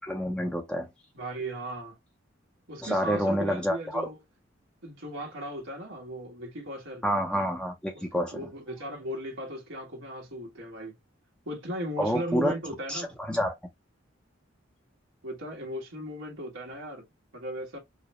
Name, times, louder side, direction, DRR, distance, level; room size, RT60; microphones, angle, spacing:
voice 1, 0.0-0.9 2.8-4.1 7.0-8.4 12.0-12.6 12.9-13.5, equal, 5° left, 0.6 m, -28 dB
voice 2, 1.1-2.0 2.7-4.2 4.8-7.0 7.9-8.1 8.3-10.9 11.5-13.1 15.2-17.1 17.3-17.8, right 1 dB, 85° right, 1.4 m, -37 dB
4.8 x 2.2 x 2.9 m
head